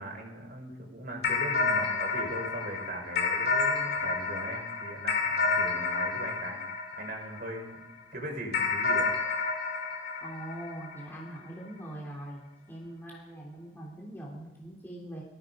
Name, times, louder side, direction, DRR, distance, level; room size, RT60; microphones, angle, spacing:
voice 1, 0.0-6.6 6.9-7.8 8.1-9.1, right 1 dB, 50° right, 2 dB, 4.0 m, -39 dB
sound 1, 1.2-7.8 8.5-11.3, left 4 dB, 60° left, 2.4 m, -30 dB
voice 2, 10.2-15.2, right 1 dB, 10° left, -4 dB, 3.3 m, -42 dB
18.5 x 14.5 x 5.1 m, 0.96 s
head